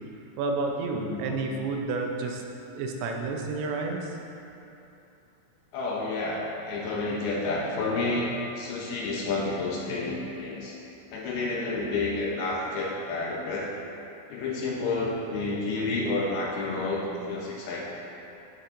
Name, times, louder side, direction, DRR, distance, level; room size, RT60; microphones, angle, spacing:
voice 1, 0.4-2.4 2.8-4.2, right 3 dB, 90° right, 1 dB, 3.1 m, -30 dB
voice 2, 0.9-1.3 5.7-10.8 11.1-13.7 14.3-17.8, left 3 dB, 75° left, -3 dB, 2.5 m, -30 dB
13.0 x 7.0 x 2.6 m, 2.9 s
omnidirectional pair, 5.0 m